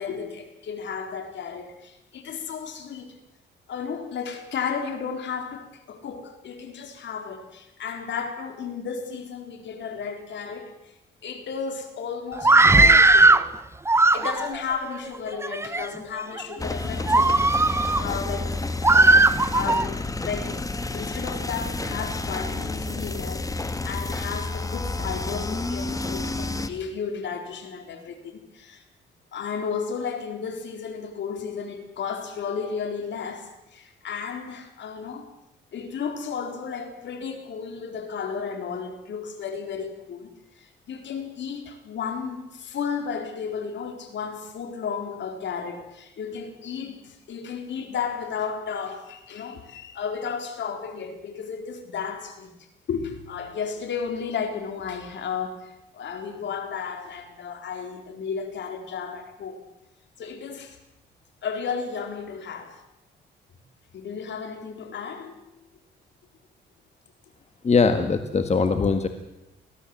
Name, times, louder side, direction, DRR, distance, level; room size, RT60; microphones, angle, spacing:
voice 1, 0.0-3.2 3.7-10.9 11.2-13.5 14.1-18.6 18.9-20.6 20.9-28.8 29.3-35.3 35.7-52.5 52.9-59.6 60.2-60.8 61.4-62.8 63.9-65.4, left 6 dB, 65° left, 6 dB, 4.0 m, -33 dB
Screaming, 12.4-13.5 13.9-14.6 15.3-15.9 16.4-16.6 17.1-18.0 18.8-19.9, right 2 dB, 15° right, 0.8 m, -17 dB
sound 1, 16.6-26.7, left 2 dB, 15° left, 1.6 m, -30 dB
voice 2, 67.6-69.1, left 4 dB, 35° left, 8 dB, 1.8 m, -21 dB
23.5 x 17.0 x 7.8 m, 0.90 s
cardioid pair, 90°, 20 cm